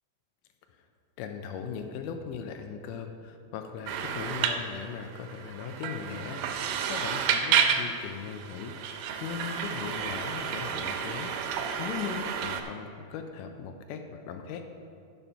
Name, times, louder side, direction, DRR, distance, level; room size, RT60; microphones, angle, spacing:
voice 1, 1.2-8.8 9.2-11.3 11.8-14.6, left 7 dB, 85° left, 6 dB, 2.1 m, -38 dB
sound 1, 3.9-12.6, right 7 dB, 90° right, 2.2 m, -31 dB
9.1 x 5.7 x 5.6 m, 2.3 s
omnidirectional pair, 3.7 m